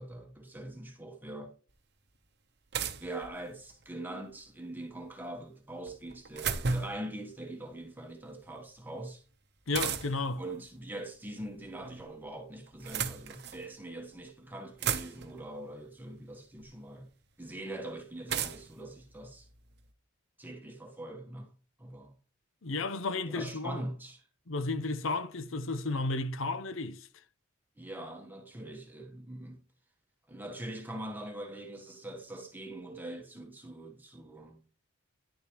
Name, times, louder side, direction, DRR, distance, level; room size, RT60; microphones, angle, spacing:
voice 1, 0.0-1.5 3.0-9.2 10.4-17.1 17.4-19.5 20.4-21.5 21.8-22.1 23.2-24.2 27.8-29.6 30.3-34.6, right 1 dB, 10° right, 1.1 m, -43 dB
sound 1, 1.7-1.8 2.7-3.8 5.9-7.1 9.7-10.3 11.5-12.1 12.7-13.7 14.3-14.4 14.6-15.5 16.6-16.7 18.3-19.8, right 6 dB, 50° right, 0.8 m, -35 dB
voice 2, 9.7-10.4 22.6-23.8 24.5-27.1, left 3 dB, 70° left, 0.8 m, -33 dB
10.5 x 6.8 x 3.0 m
head